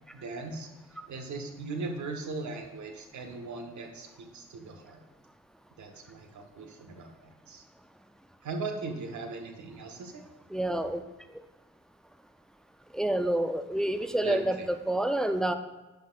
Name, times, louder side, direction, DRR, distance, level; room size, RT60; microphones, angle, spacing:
voice 1, 0.1-0.7 1.1-5.0 5.8-7.6 8.4-10.2 14.2-14.7, right 3 dB, 60° right, 4 dB, 1.1 m, -39 dB
voice 2, 10.5-11.0 12.9-14.6 14.9-15.6, right 1 dB, ahead, 9 dB, 0.5 m, -28 dB
10.0 x 5.5 x 2.4 m, 1.1 s
hypercardioid pair, 40°, 33 cm